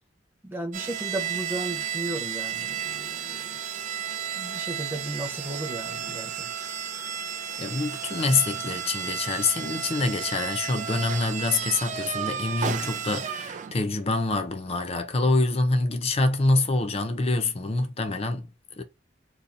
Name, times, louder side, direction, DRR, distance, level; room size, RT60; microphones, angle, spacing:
voice 1, 0.4-3.6 4.3-6.5, right 1 dB, 10° right, 1.1 m, -35 dB
sound 1, 0.7-14.0, right 8 dB, 40° right, 0.4 m, -33 dB
voice 2, 7.6-18.5 18.8-18.9, left 3 dB, 35° left, 0.6 m, -26 dB
2.8 x 2.8 x 3.7 m
head